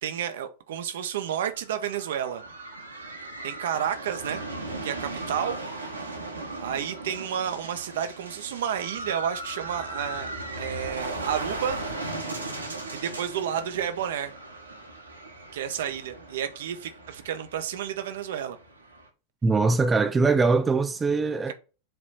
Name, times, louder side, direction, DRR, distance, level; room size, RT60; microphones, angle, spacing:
voice 1, 0.0-2.4 3.4-4.4 4.8-5.6 6.6-10.3 10.6-11.8 12.9-14.3 15.5-18.6, right 9 dB, 60° right, 0.9 m, -31 dB
sound 1, 1.4-19.1, right 2 dB, 80° right, 1.5 m, -37 dB
voice 2, 19.4-21.5, right 3 dB, 15° right, 0.6 m, -22 dB
7.9 x 3.2 x 4.0 m
figure-of-eight pair, 90°, 0 cm